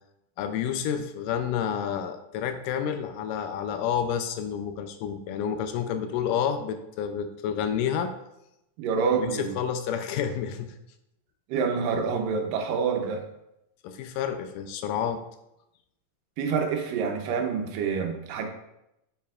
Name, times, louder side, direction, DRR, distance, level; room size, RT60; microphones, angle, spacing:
voice 1, 0.4-8.2 9.2-10.7 13.8-15.2, left 8 dB, 80° left, 8 dB, 2.1 m, -29 dB
voice 2, 8.8-9.5 11.5-13.3 16.4-18.5, right 5 dB, 80° right, 4 dB, 2.4 m, -27 dB
7.4 x 6.8 x 2.4 m, 0.84 s
omnidirectional pair, 3.9 m